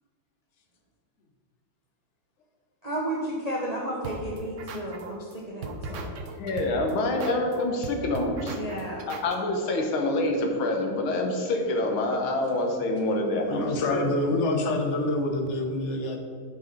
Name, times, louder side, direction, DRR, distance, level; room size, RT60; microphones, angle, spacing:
voice 1, 2.8-6.1 8.5-9.1, right 1 dB, 30° right, -3 dB, 0.7 m, -33 dB
sound 1, 4.0-5.3 5.6-9.3, right 3 dB, 70° right, 0.7 m, -38 dB
voice 2, 6.4-8.6 9.1-14.1, left 2 dB, 85° left, 2 dB, 2.0 m, -26 dB
voice 3, 13.5-16.2, left 2 dB, 45° left, 3 dB, 1.0 m, -26 dB
11.0 x 5.6 x 4.0 m, 2.3 s
omnidirectional pair, 2.2 m